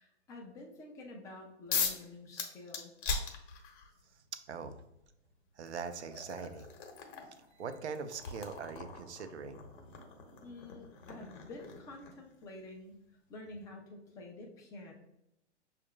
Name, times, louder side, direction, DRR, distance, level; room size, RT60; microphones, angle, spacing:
voice 1, 0.0-2.9 10.4-13.0 13.3-14.9, left 2 dB, 10° left, 1 dB, 0.4 m, -49 dB
sound 1, 1.7-2.0 2.4-3.9 5.0-5.1 5.7-12.3, left 5 dB, 45° left, 0.9 m, -40 dB
voice 2, 4.5-4.8 5.6-6.7 7.6-10.1, right 5 dB, 70° right, 9 dB, 0.6 m, -42 dB
6.3 x 2.5 x 3.0 m, 0.83 s
figure-of-eight pair, 120°, 35 cm